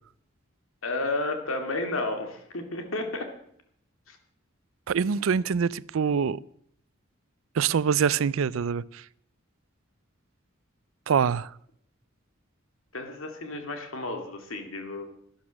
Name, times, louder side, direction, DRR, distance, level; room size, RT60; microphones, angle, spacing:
voice 1, 0.8-3.3 4.1-4.2 12.9-15.1, left 2 dB, 85° left, 2.3 m, -32 dB
voice 2, 4.9-6.4 7.6-9.0 11.1-11.5, right 6 dB, 80° right, 0.4 m, -25 dB
12.0 x 11.5 x 6.3 m
head